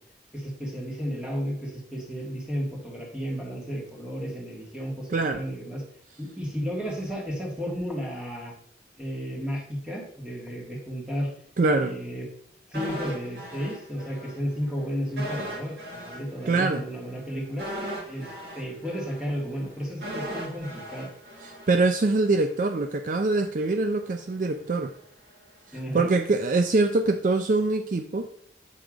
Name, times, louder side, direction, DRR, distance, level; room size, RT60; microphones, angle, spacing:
voice 1, 0.3-5.8 6.2-8.5 9.0-11.3 11.7-12.3 12.7-17.7 18.0-18.3 18.6-21.1 25.7-26.1, equal, 5° right, -3 dB, 1.8 m, -33 dB
voice 2, 5.1-5.5 11.6-11.9 16.5-16.8 21.4-24.9 25.9-28.3, right 3 dB, 45° right, 7 dB, 0.4 m, -24 dB
sound 1, 12.7-14.4 14.6-14.8 15.2-22.2 22.5-22.7, equal, 65° right, 1.8 m, -38 dB
7.5 x 3.5 x 4.9 m, 0.63 s
head